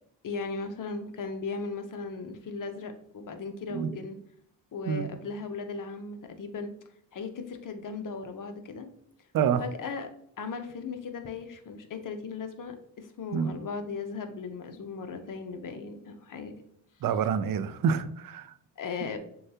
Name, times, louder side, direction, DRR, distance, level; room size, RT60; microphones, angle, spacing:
voice 1, 0.2-4.2 4.7-6.7 7.1-8.9 9.6-10.1 10.4-16.5 18.8-19.2, left 4 dB, 45° left, 6 dB, 0.7 m, -37 dB
voice 2, 17.0-18.5, right 7 dB, 50° right, 13 dB, 0.5 m, -27 dB
6.4 x 2.3 x 2.8 m, 0.68 s
cardioid pair, 75°, 44 cm